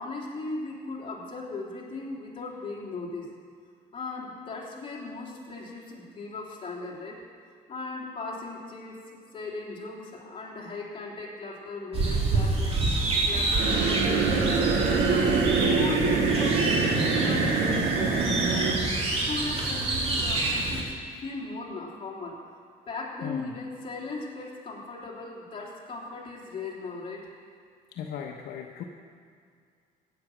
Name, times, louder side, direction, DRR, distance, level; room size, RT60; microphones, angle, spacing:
voice 1, 0.0-3.3 3.9-7.2 7.7-9.0 9.3-12.8 13.2-21.0 21.2-22.4 22.9-27.3, left 3 dB, 30° left, -3 dB, 3.3 m, -38 dB
sound 1, 11.9-20.8, right 2 dB, 35° right, 2.9 m, -28 dB
sound 2, 13.6-18.8, right 4 dB, 85° right, 1.9 m, -24 dB
voice 2, 23.2-23.5 27.9-28.8, left 8 dB, 70° left, 2 dB, 0.9 m, -37 dB
15.5 x 9.1 x 6.2 m, 2.2 s
cardioid pair, 110°, 17 cm